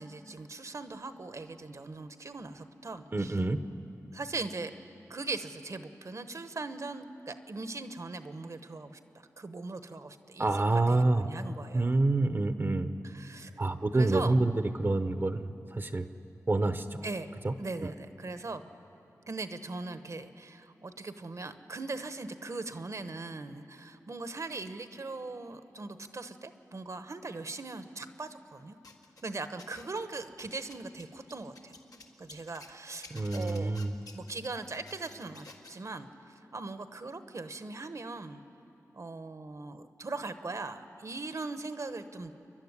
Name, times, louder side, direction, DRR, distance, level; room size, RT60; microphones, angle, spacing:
voice 1, 0.0-3.4 4.1-4.7 5.1-9.0 9.4-12.0 13.0-13.5 13.9-14.3 17.0-17.3 17.6-18.7 19.3-28.8 29.2-31.7 32.2-33.7 34.1-38.4 38.9-42.3, right 3 dB, 55° right, 10 dB, 1.1 m, -40 dB
voice 2, 3.1-3.6 10.4-11.3 11.7-13.0 13.6-14.5 14.8-16.1 16.5-17.0 17.4-17.5 17.8-17.9 33.1-33.9, right 2 dB, 35° right, 9 dB, 0.9 m, -27 dB
sound 1, 28.8-30.0 30.3-32.7 33.0-35.8, left 2 dB, 85° left, 1.8 m, -51 dB
28.5 x 11.5 x 9.7 m, 2.9 s
wide cardioid pair, 65°, 6 cm